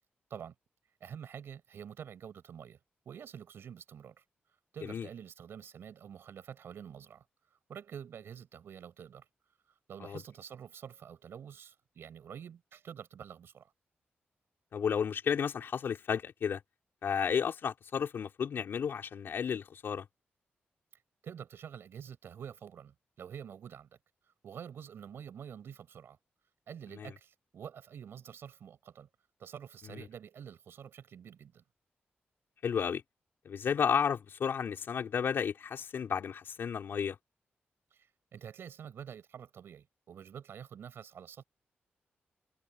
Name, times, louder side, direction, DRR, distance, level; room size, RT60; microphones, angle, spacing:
voice 1, 1.0-2.8 3.1-4.2 4.7-7.2 7.7-9.2 9.9-13.7 21.2-23.9 24.4-26.2 26.7-29.1 29.4-31.6 37.9-38.1 38.3-41.4, right 8 dB, 80° right, 6.2 m, -47 dB
voice 2, 14.7-16.6 17.0-20.1 26.9-27.1 29.8-30.1 32.6-33.0 33.4-37.2, left 7 dB, 70° left, 4.6 m, -32 dB
wide cardioid pair, 135°, 4 cm